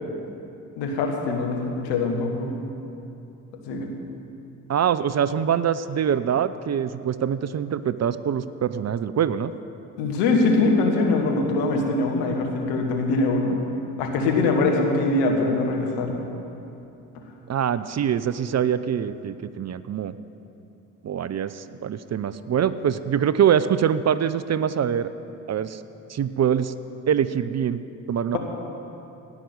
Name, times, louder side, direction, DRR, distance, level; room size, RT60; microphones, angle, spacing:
voice 1, 0.8-2.5 3.6-3.9 10.0-13.6 14.0-16.2 28.3-28.4, left 3 dB, 80° left, 2 dB, 1.5 m, -23 dB
voice 2, 4.7-9.5 17.5-20.2 21.0-25.1 25.5-25.8 26.1-26.7 27.1-27.8 28.1-28.4, right 8 dB, 40° right, 14 dB, 0.6 m, -24 dB
17.0 x 6.0 x 7.9 m, 2.8 s
hypercardioid pair, 45°, 41 cm